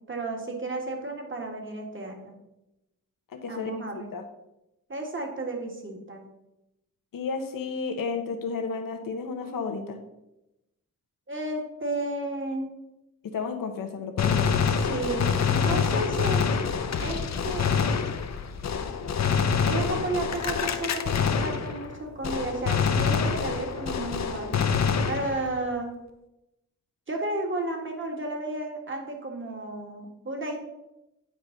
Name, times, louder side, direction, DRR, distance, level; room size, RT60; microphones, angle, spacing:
voice 1, 0.1-2.3 3.5-4.1 4.9-6.2 11.3-12.7 14.7-16.5 17.0-17.7 19.7-24.5 25.1-25.9 27.1-30.6, right 2 dB, 35° right, 2 dB, 1.7 m, -32 dB
voice 2, 3.3-3.7 4.1-4.2 7.1-10.0 13.2-14.6 15.7-16.1, left 5 dB, 85° left, 4 dB, 0.9 m, -32 dB
Gunshot gunfire, 14.2-22.0 22.2-25.6, left 6 dB, 55° left, 0.7 m, -26 dB
8.8 x 4.9 x 3.9 m, 0.92 s
cardioid pair, 75°, 33 cm